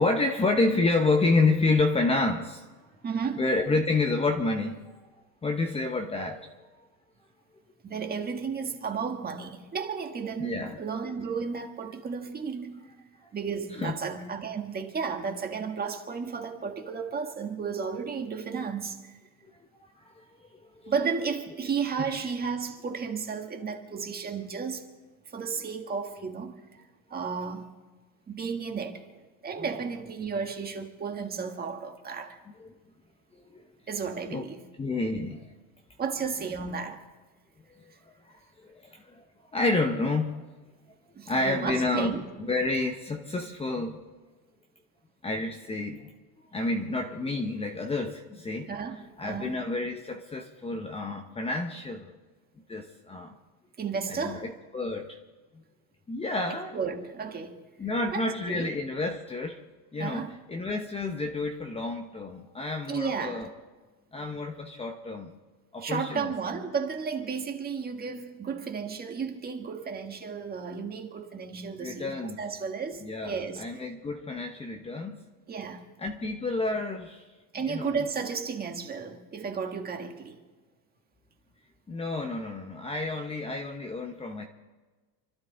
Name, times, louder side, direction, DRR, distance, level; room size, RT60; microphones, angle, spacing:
voice 1, 0.0-2.7 3.4-4.8 5.4-6.5 10.4-10.8 13.8-14.0 19.8-20.2 20.8-20.9 32.6-32.7 33.3-33.6 34.3-34.5 34.8-35.5 37.7-37.9 38.3-39.2 39.5-40.5 41.3-44.0 45.2-46.1 46.4-48.7 49.2-52.1 52.7-53.3 54.1-55.2 56.1-56.8 57.8-59.6 59.9-63.5 64.1-65.4 65.7-66.3 71.8-72.4 73.0-75.2 76.0-77.2 77.6-78.0 81.9-84.5, left 3 dB, 15° left, 1.0 m, -29 dB
voice 2, 3.0-3.5 7.8-12.9 13.3-19.1 20.9-24.9 25.3-26.6 27.1-27.7 28.3-32.4 33.9-34.7 36.0-37.1 41.1-42.2 48.7-49.6 53.8-54.5 56.5-57.6 58.1-58.7 60.0-60.4 62.9-63.5 65.8-73.9 75.5-75.9 77.5-80.4, right 5 dB, 20° right, 1.6 m, -33 dB
28.5 x 12.5 x 4.0 m
supercardioid pair, 140°, 44 cm